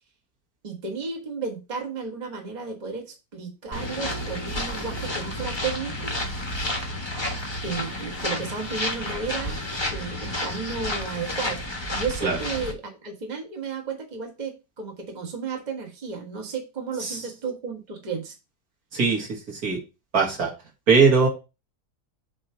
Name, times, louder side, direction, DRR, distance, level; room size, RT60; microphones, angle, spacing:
voice 1, 0.6-6.1 7.6-9.6 9.9-11.6 11.9-18.3, right 5 dB, 25° right, 2 dB, 1.5 m, -33 dB
sound 1, 3.7-12.7, left 1 dB, 15° left, 1.2 m, -31 dB
voice 2, 18.9-19.8 20.1-20.5 20.9-21.3, right 5 dB, 60° right, 1 dB, 2.0 m, -20 dB
7.3 x 3.1 x 5.5 m, 0.27 s
omnidirectional pair, 1.8 m